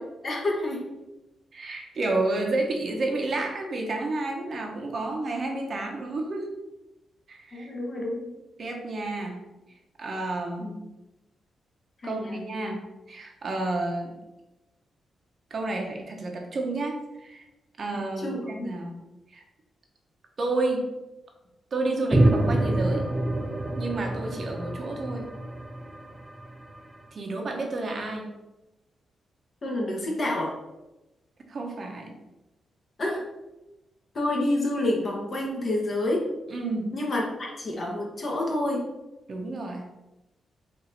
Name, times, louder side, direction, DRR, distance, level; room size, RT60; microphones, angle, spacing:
voice 1, 0.2-0.8 7.5-8.3 10.6-10.8 12.0-12.4 18.2-18.7 29.6-30.5 33.0-33.2 34.1-36.3 36.9-38.8, left 1 dB, 45° left, -1 dB, 1.1 m, -28 dB
voice 2, 1.5-6.5 7.3-7.7 8.6-9.4 10.0-10.7 12.0-12.8 13.1-14.2 15.5-17.4 17.8-18.9 19.3-19.4 20.4-20.9 21.7-23.1 23.8-25.3 27.1-28.3 31.5-32.1 36.5-36.9 39.3-39.9, right 2 dB, 50° right, 1 dB, 0.8 m, -30 dB
sound 1, 22.1-26.8, right 1 dB, 15° right, 0.5 m, -26 dB
4.2 x 2.7 x 4.0 m, 0.99 s
cardioid pair, 100°, 0 cm